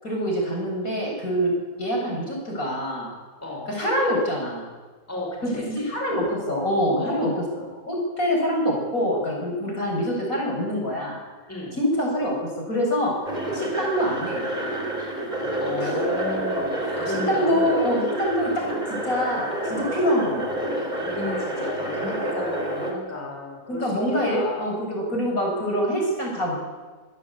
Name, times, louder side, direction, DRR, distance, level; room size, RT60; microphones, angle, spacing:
voice 1, 0.0-1.5 1.8-3.1 3.7-4.7 5.4-7.3 7.9-11.2 11.8-12.4 12.7-13.1 13.5-14.4 15.8-15.9 16.9-17.0 17.3-18.6 18.9-20.5 23.7-26.6, equal, 55° left, -1 dB, 8.0 m, -25 dB
voice 2, 3.4-3.7 5.1-5.9 7.0-7.4 11.5-11.8 15.6-17.7 20.7-24.7, left 1 dB, 10° left, -2 dB, 5.1 m, -33 dB
sound 1, 13.3-22.9, right 1 dB, 25° right, 4.2 m, -28 dB
26.5 x 16.5 x 8.6 m, 1.4 s
omnidirectional pair, 1.7 m